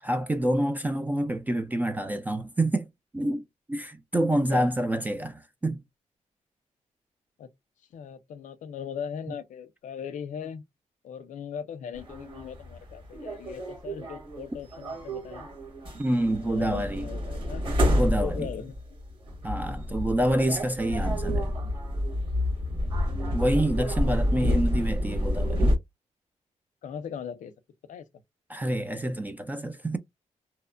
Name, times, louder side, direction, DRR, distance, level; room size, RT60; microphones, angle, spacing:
voice 1, 0.0-2.9 3.1-3.4 3.7-5.8 16.0-17.1 17.9-18.5 19.4-21.5 23.3-25.7 28.5-30.0, right 1 dB, 15° right, 0.3 m, -27 dB
voice 2, 4.3-4.7 7.4-7.5 7.9-10.6 11.0-15.5 16.3-17.6 18.2-18.8 21.6-21.7 23.8-24.9 26.8-27.5 27.9-28.1, left 7 dB, 80° left, 0.5 m, -39 dB
sound 1, 11.9-25.8, equal, 40° right, 1.3 m, -29 dB
2.8 x 2.1 x 2.4 m
cardioid pair, 105°, 13 cm